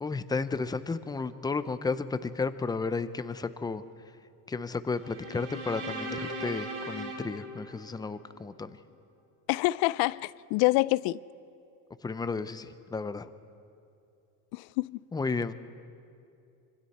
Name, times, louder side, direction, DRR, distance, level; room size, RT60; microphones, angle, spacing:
voice 1, 0.0-3.8 4.5-8.8 12.0-13.3 15.1-15.5, left 4 dB, 10° left, 0.6 m, -33 dB
sound 1, 4.9-8.3, right 1 dB, 90° right, 5.0 m, -39 dB
voice 2, 9.5-11.2 14.5-15.0, left 20 dB, 70° left, 0.5 m, -26 dB
26.0 x 25.0 x 4.3 m
cardioid pair, 130°, 40 cm